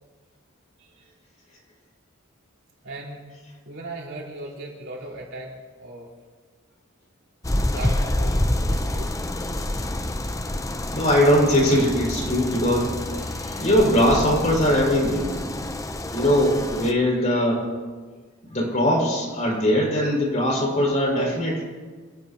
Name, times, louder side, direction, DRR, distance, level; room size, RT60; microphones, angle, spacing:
voice 1, 2.8-3.2 3.6-5.5 5.8-6.1 7.6-9.1, right 2 dB, 65° right, -2 dB, 4.6 m, -37 dB
sound 1, 7.4-16.9, left 1 dB, 15° left, 0.7 m, -27 dB
voice 2, 10.9-15.3 16.1-17.7 18.5-21.6, equal, 35° left, -3 dB, 5.9 m, -21 dB
28.0 x 16.0 x 3.0 m, 1.4 s
head